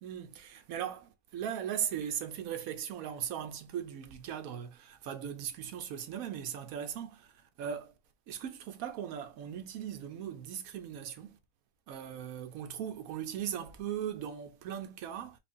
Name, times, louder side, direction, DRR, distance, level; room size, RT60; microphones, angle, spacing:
voice 1, 0.0-7.3 7.6-7.9 8.3-11.4 11.9-15.4, right 9 dB, 70° right, 1.0 m, -38 dB
4.5 x 2.5 x 2.6 m
omnidirectional pair, 1.6 m